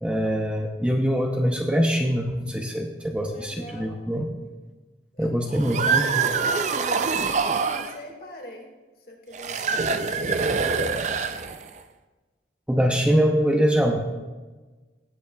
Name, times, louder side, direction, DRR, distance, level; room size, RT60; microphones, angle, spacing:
voice 1, 0.0-4.3 5.2-6.1 12.7-14.0, equal, 5° right, 2 dB, 0.7 m, -23 dB
voice 2, 3.2-4.0 5.1-5.3 5.8-8.7 9.1-10.3 10.6-11.2, left 1 dB, 55° left, 1 dB, 2.0 m, -42 dB
sound 1, 5.5-7.9 9.3-11.8, right 5 dB, 40° right, 0.4 m, -25 dB
17.5 x 8.2 x 2.4 m, 1.3 s
head